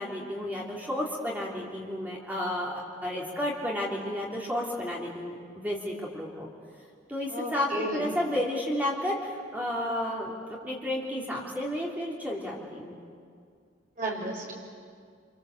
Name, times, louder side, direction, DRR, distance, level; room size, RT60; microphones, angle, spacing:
voice 1, 0.0-6.5 7.1-12.9, left 1 dB, 10° right, -3 dB, 3.3 m, -32 dB
voice 2, 7.3-8.2 14.0-14.5, right 1 dB, 40° right, -1 dB, 5.4 m, -33 dB
27.0 x 27.0 x 8.1 m, 2.2 s
head